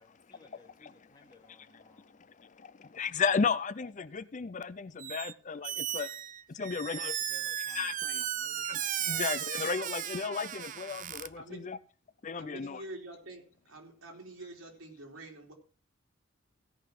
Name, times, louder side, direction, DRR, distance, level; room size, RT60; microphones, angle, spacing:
voice 1, 0.0-2.2 2.8-3.1 6.6-7.9 8.2-8.7, left 2 dB, 20° left, 2.4 m, -59 dB
voice 2, 1.9-6.1 6.5-7.1 7.7-8.2 8.7-11.8 12.2-12.8, left 5 dB, 40° left, 0.5 m, -34 dB
Squeak, 5.0-5.3 5.6-11.3, right 10 dB, 40° right, 0.5 m, -35 dB
voice 3, 11.4-11.7 12.3-15.5, right 1 dB, 90° right, 3.6 m, -47 dB
16.5 x 5.7 x 5.9 m
head